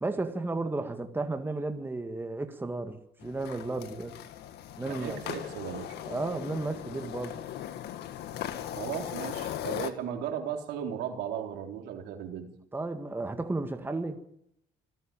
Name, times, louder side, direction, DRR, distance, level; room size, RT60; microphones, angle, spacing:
voice 1, 0.0-4.1 4.8-5.2 6.1-7.4 12.7-14.2, right 2 dB, 10° right, 1.9 m, -33 dB
sound 1, 3.2-9.9, left 11 dB, 75° left, 1.9 m, -38 dB
voice 2, 4.8-5.9 8.8-12.5, right 9 dB, 85° right, 3.8 m, -36 dB
26.5 x 14.0 x 8.9 m
cardioid pair, 110°, 17 cm